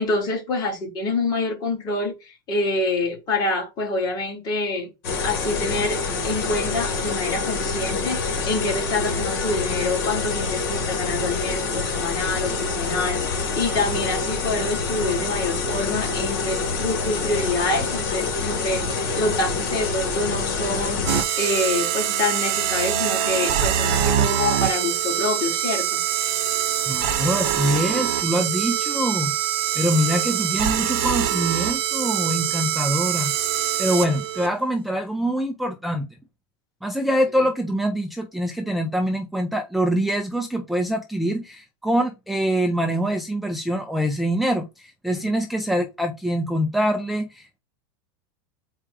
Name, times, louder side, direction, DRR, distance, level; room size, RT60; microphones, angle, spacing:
voice 1, 0.0-4.9 5.2-26.0 37.4-37.5 45.1-45.3, left 2 dB, 35° left, 2.2 m, -26 dB
sound 1, 5.0-21.2, left 4 dB, 60° left, 1.8 m, -26 dB
sound 2, 21.1-34.5, right 10 dB, 50° right, 1.0 m, -24 dB
voice 2, 26.9-29.3 29.7-33.3 33.8-36.1 36.8-47.6, equal, ahead, 0.4 m, -24 dB
4.4 x 2.4 x 4.5 m
supercardioid pair, 140°, 12 cm